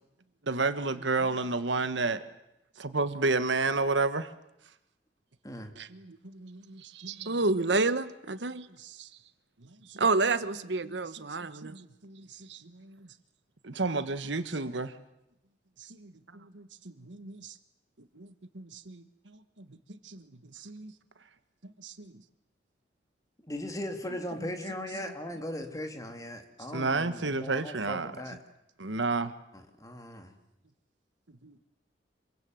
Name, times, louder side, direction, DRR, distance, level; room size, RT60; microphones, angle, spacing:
voice 1, 0.4-2.2 2.8-4.3 5.9-7.3 8.8-9.1 9.6-10.0 11.6-13.1 13.6-14.9 15.8-17.5 18.1-20.3 20.5-20.9 21.8-22.1 26.7-28.1 28.8-29.3 31.4-31.5, right 3 dB, 85° right, 1.5 m, -32 dB
voice 2, 6.8-8.7 9.9-11.7 12.5-12.6, right 3 dB, 70° right, 1.2 m, -29 dB
voice 3, 23.5-28.4 29.5-30.3, left 1 dB, 20° left, 2.8 m, -38 dB
26.5 x 23.5 x 7.9 m
head